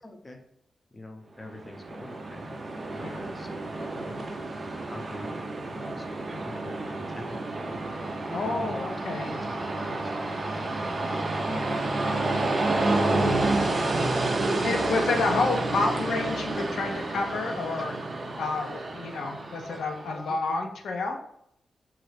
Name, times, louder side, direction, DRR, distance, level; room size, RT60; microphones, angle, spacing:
voice 1, 0.0-0.4 0.9-2.6 2.9-7.9 8.6-8.8 9.3-10.2 10.5-12.3 14.6-15.0 20.1-20.6, left 2 dB, 25° left, 3 dB, 0.5 m, -46 dB
Train, 1.5-20.1, right 2 dB, 45° right, 0.4 m, -30 dB
voice 2, 8.3-9.3 9.8-10.0 13.1-13.7 14.6-17.9 18.4-21.2, left 3 dB, 80° left, 3 dB, 0.4 m, -29 dB
3.0 x 2.4 x 3.1 m, 0.73 s
cardioid pair, 90°, 0 cm